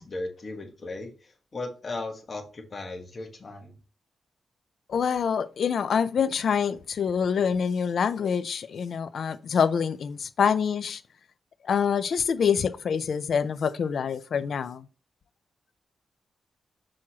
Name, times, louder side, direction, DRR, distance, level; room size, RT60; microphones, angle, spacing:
voice 1, 0.0-3.8, left 2 dB, 35° left, 4 dB, 1.3 m, -37 dB
voice 2, 4.9-11.0 11.6-14.8, left 7 dB, 60° left, 11 dB, 0.4 m, -26 dB
6.2 x 6.0 x 2.9 m, 0.33 s
wide cardioid pair, 135°, 0 cm